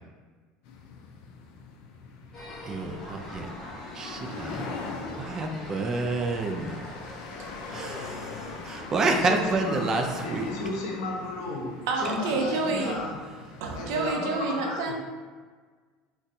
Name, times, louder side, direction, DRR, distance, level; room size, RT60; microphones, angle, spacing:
sound 1, 0.6-14.2, left 4 dB, 65° left, 0.4 m, -42 dB
sound 2, 2.3-10.7, left 1 dB, 25° left, 0.9 m, -43 dB
voice 1, 2.6-3.5 3.9-4.7 5.2-6.8 7.7-10.5, right 3 dB, 25° right, 4 dB, 0.3 m, -29 dB
voice 2, 9.1-9.9 10.2-11.7 12.0-13.2 13.7-14.9, left 2 dB, 80° left, -2 dB, 0.8 m, -34 dB
voice 3, 11.9-13.0 13.6-14.9, right 3 dB, 80° right, 1 dB, 0.5 m, -28 dB
4.0 x 2.2 x 2.6 m, 1.5 s
cardioid pair, 145°, 2 cm